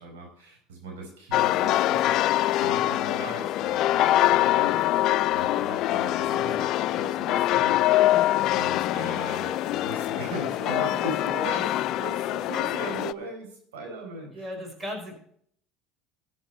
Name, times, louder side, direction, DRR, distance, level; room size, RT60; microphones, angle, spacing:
voice 1, 0.0-4.8 5.3-7.8 8.5-14.5, right 3 dB, 80° right, 1 dB, 4.5 m, -39 dB
sound 1, 1.3-13.1, left 14 dB, 55° left, 0.3 m, -24 dB
voice 2, 6.3-6.7 7.5-7.6 14.3-15.1, equal, 25° right, 3 dB, 4.6 m, -37 dB
14.0 x 7.4 x 4.4 m, 0.63 s
hypercardioid pair, 80°, 0 cm